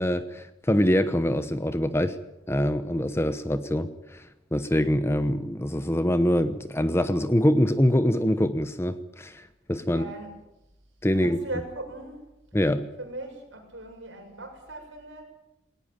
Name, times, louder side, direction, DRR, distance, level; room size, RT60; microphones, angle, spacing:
voice 1, 0.0-2.2 2.5-10.0 11.0-11.4 12.5-12.9, equal, 15° left, 11 dB, 0.9 m, -24 dB
voice 2, 9.9-10.3 11.1-12.2 13.0-15.2, right 2 dB, 60° right, 3 dB, 7.3 m, -39 dB
20.0 x 18.5 x 9.2 m, 0.91 s
head